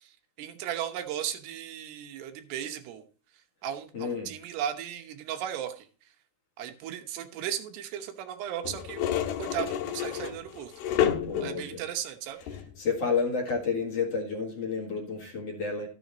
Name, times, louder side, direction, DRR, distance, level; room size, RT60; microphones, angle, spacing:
voice 1, 0.0-3.0 3.6-5.9 6.6-10.7 11.4-12.4, right 10 dB, 90° right, 6 dB, 3.2 m, -36 dB
voice 2, 3.9-4.3 11.3-11.8 12.4-15.9, left 5 dB, 50° left, -2 dB, 2.4 m, -31 dB
sound 1, 8.6-11.7 12.4-12.8 13.5-13.6, left 10 dB, 80° left, 3.0 m, -30 dB
13.5 x 7.0 x 4.0 m, 0.39 s
omnidirectional pair, 4.6 m